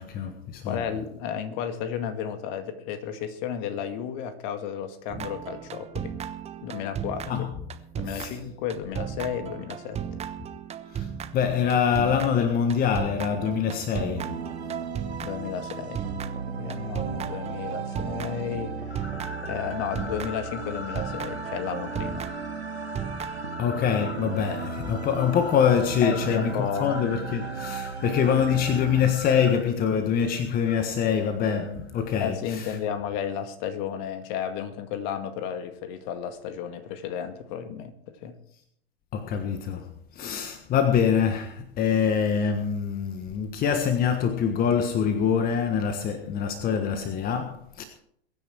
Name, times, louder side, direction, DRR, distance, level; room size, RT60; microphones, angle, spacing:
voice 1, 0.0-0.8 7.3-7.5 8.1-8.4 10.9-11.1 11.3-14.3 23.6-32.7 39.1-47.8, left 7 dB, 30° left, 1.5 m, -25 dB
voice 2, 0.7-6.2 6.6-7.5 8.0-10.2 15.2-16.0 16.4-19.0 19.4-22.3 26.0-27.0 28.2-28.6 32.2-38.4, left 8 dB, 45° left, 2.1 m, -33 dB
sound 1, 5.1-20.6 20.9-23.4, right 8 dB, 20° right, 1.1 m, -36 dB
sound 2, 14.2-29.0, right 5 dB, 85° right, 1.4 m, -36 dB
sound 3, 18.9-32.2, left 3 dB, 85° left, 1.8 m, -43 dB
22.5 x 9.7 x 4.7 m
figure-of-eight pair, 95°, 32 cm